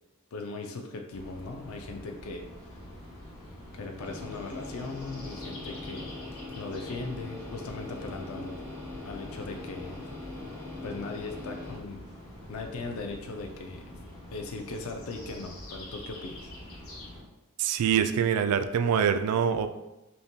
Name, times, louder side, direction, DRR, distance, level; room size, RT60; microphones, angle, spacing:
voice 1, 0.3-2.4 3.7-6.1 6.5-8.6 9.0-10.1 10.8-12.0 12.5-13.9 14.3-16.5, left 3 dB, 65° left, 3 dB, 0.4 m, -39 dB
sound 1, 1.1-17.2, left 1 dB, 85° left, 1.5 m, -46 dB
sound 2, 4.0-11.8, left 2 dB, 10° left, 0.5 m, -42 dB
voice 2, 17.6-19.7, right 8 dB, 85° right, 13 dB, 0.3 m, -25 dB
5.4 x 2.2 x 2.7 m, 1.0 s
head